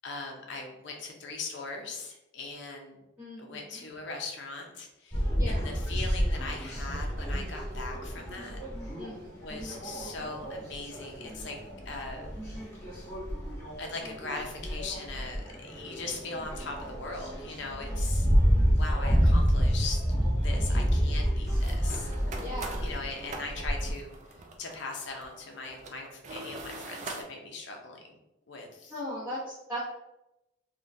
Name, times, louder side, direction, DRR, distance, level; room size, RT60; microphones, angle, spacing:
voice 1, 0.0-3.0 3.4-8.6 9.4-11.6 11.8-12.3 13.8-18.3 18.7-20.0 20.4-22.1 22.8-28.2 28.5-28.9, left 3 dB, 60° left, 2 dB, 0.6 m, -40 dB
voice 2, 3.2-3.8 5.3-5.8 9.0-9.4 20.7-21.0 22.4-22.9 28.9-29.9, equal, 5° right, -15 dB, 1.0 m, -38 dB
sound 1, 5.1-23.9, equal, 15° left, 1.2 m, -29 dB
sound 2, 18.9-19.0 20.2-20.4 20.9-21.0 21.5-27.2, right 2 dB, 35° right, 0.3 m, -43 dB
3.7 x 2.2 x 2.6 m, 0.91 s
head